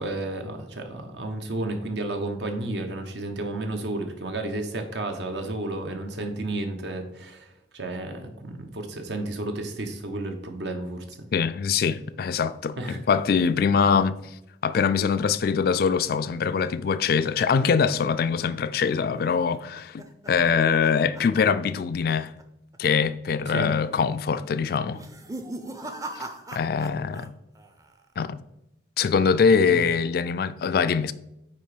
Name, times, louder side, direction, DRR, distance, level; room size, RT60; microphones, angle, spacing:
voice 1, 0.0-11.3 12.8-13.0 23.5-23.7 29.7-29.8, right 2 dB, 75° right, 1.0 m, -32 dB
voice 2, 11.3-14.2 14.6-22.3 22.8-25.0 26.5-27.3 28.2-28.4 29.0-31.1, left 6 dB, 55° left, 0.3 m, -23 dB
sound 1, 19.3-21.8 22.1-22.4 22.7-22.8 23.6-24.0 24.9-27.3 27.5-28.1, right 2 dB, 20° right, 0.5 m, -40 dB
8.8 x 2.9 x 4.9 m
head